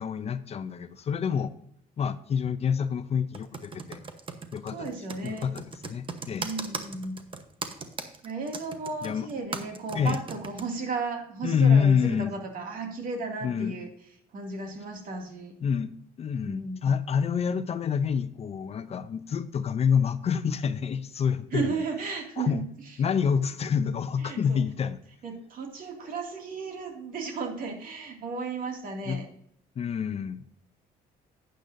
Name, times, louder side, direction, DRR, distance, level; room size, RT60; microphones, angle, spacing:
voice 1, 0.0-1.5 2.0-4.0 4.5-4.9 5.2-6.5 9.0-9.3 9.9-10.2 11.4-12.3 13.4-13.8 15.6-21.8 22.4-22.6 23.0-25.0 29.1-29.2 29.8-30.4, left 7 dB, 40° left, 12 dB, 0.6 m, -27 dB
Computer keyboard, 3.3-10.6, right 4 dB, 30° right, 1.0 m, -38 dB
voice 2, 4.7-5.5 6.4-7.2 8.2-13.9 14.3-15.5 16.4-16.9 21.5-22.7 24.2-24.6 25.2-29.3, right 4 dB, 55° right, 3 dB, 2.4 m, -34 dB
11.5 x 9.0 x 2.7 m, 0.67 s
cardioid pair, 110°, 17 cm